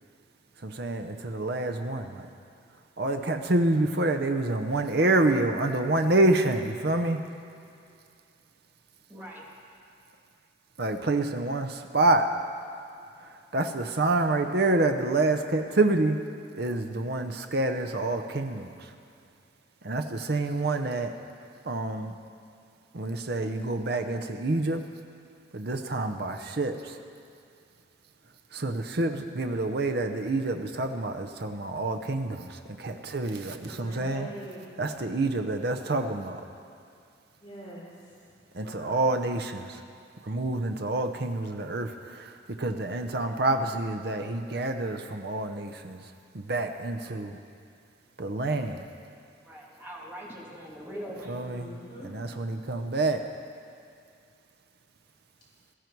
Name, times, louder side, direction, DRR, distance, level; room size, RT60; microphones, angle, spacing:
voice 1, 0.6-2.3 3.0-7.2 10.8-12.3 13.5-16.2 16.6-18.9 19.8-21.1 21.6-22.1 22.9-24.8 25.5-27.0 28.5-34.3 34.8-36.4 38.5-39.8 40.2-46.0 46.3-47.4 48.2-48.8 51.3-51.8 52.0-53.2, right 2 dB, 55° right, 6 dB, 0.7 m, -27 dB
voice 2, 9.1-9.4 49.4-51.4, equal, 10° right, -4 dB, 2.2 m, -41 dB
voice 3, 33.6-34.7 37.4-38.2 38.6-39.0 51.4-52.1, right 1 dB, 25° left, -8 dB, 4.3 m, -43 dB
17.5 x 13.0 x 4.6 m, 2.5 s
head